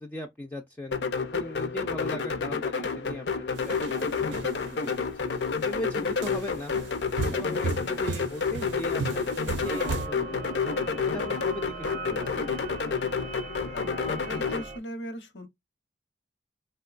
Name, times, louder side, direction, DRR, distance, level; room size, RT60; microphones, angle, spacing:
voice 1, 0.0-6.7 7.3-10.4 11.1-12.5, left 1 dB, 10° left, 0.3 m, -38 dB
sound 1, 0.9-14.6, left 5 dB, 70° left, 0.5 m, -30 dB
sound 2, 3.6-4.9 5.5-5.7 6.2-10.1, right 4 dB, 90° right, 0.5 m, -35 dB
sound 3, 9.6-14.8, right 3 dB, 40° right, 0.6 m, -39 dB
voice 2, 13.7-15.5, left 1 dB, 90° left, 0.9 m, -39 dB
3.6 x 2.2 x 2.4 m
head